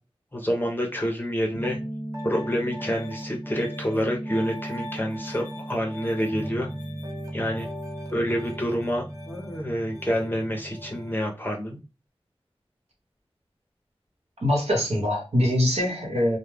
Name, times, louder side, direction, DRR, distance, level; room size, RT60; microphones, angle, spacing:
voice 1, 0.3-1.8 2.2-6.7 7.3-7.7 8.1-11.8, equal, 20° left, 0.6 m, -28 dB
Piano, 1.5-11.2, right 1 dB, 35° right, 1.0 m, -36 dB
voice 2, 14.4-16.4, left 1 dB, 85° right, 1.0 m, -23 dB
2.3 x 2.0 x 3.2 m
wide cardioid pair, 60°, 10 cm